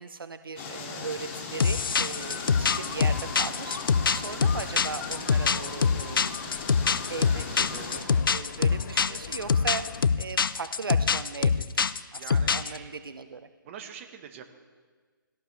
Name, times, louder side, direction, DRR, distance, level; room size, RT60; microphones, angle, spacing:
voice 1, 0.0-6.4 7.1-7.8 8.3-11.8 12.1-13.5, right 4 dB, 90° right, 10 dB, 0.8 m, -38 dB
sound 1, 0.6-8.0, left 4 dB, 35° left, 2.6 m, -38 dB
sound 2, 1.6-12.8, left 5 dB, 80° left, 0.5 m, -24 dB
sound 3, 2.1-10.0, left 6 dB, 55° left, 1.3 m, -42 dB
voice 2, 7.7-8.0 12.2-12.9 13.6-14.4, right 8 dB, 35° right, 5 dB, 1.5 m, -44 dB
18.0 x 17.0 x 3.4 m, 1.5 s
hypercardioid pair, 145°, 11 cm